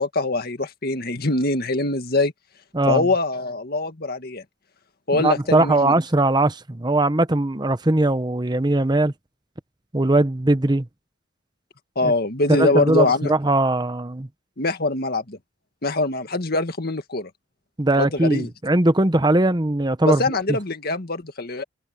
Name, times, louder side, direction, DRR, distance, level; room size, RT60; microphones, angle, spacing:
voice 1, 0.0-2.3 2.9-4.4 5.1-5.9 12.0-13.3 14.6-15.4 15.8-17.3 18.0-18.5 20.1-21.6, left 2 dB, 50° left, 1.9 m, -23 dB
voice 2, 2.7-3.1 5.1-9.1 9.9-10.9 12.0-12.1 12.5-14.3 17.8-20.2, right 2 dB, 20° right, 0.9 m, -20 dB
head